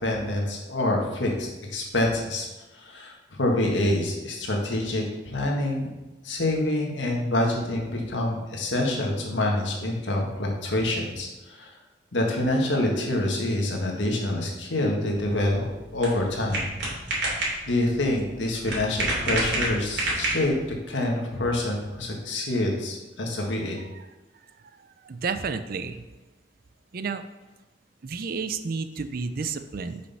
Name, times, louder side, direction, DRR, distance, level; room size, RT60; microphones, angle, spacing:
voice 1, 0.0-2.5 2.7-5.9 6.2-11.7 12.1-15.7 15.9-16.7 17.7-20.5 20.9-23.8, left 1 dB, 80° left, 0 dB, 1.7 m, -26 dB
sound 1, 15.2-20.7, right 2 dB, 70° right, 2.8 m, -30 dB
voice 2, 25.0-26.0 26.9-27.2 28.0-30.0, right 5 dB, 50° right, 11 dB, 0.5 m, -31 dB
6.5 x 5.4 x 5.6 m, 1.1 s
head